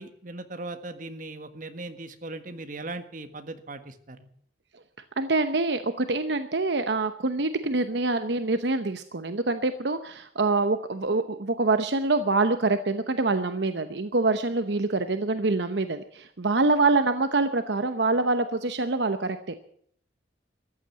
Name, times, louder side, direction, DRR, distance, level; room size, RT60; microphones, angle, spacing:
voice 1, 0.0-4.3, right 2 dB, 45° right, 8 dB, 1.5 m, -39 dB
voice 2, 5.2-19.5, right 3 dB, 70° right, 9 dB, 0.9 m, -25 dB
14.5 x 10.5 x 8.2 m, 0.65 s
head